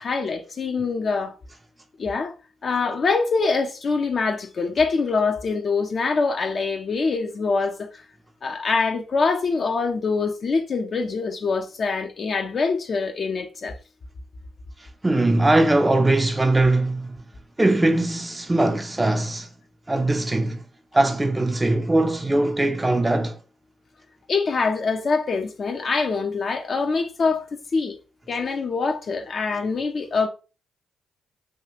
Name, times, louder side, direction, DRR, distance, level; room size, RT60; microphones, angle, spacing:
voice 1, 0.0-1.3 2.0-2.3 2.6-8.0 8.4-13.8 24.3-28.0 28.3-30.3, left 4 dB, 50° left, 0.5 m, -24 dB
voice 2, 15.0-17.2 17.6-19.5 19.9-20.6 20.9-23.4, right 2 dB, 20° right, 0.4 m, -20 dB
3.4 x 2.3 x 2.8 m
supercardioid pair, 60°, 0 cm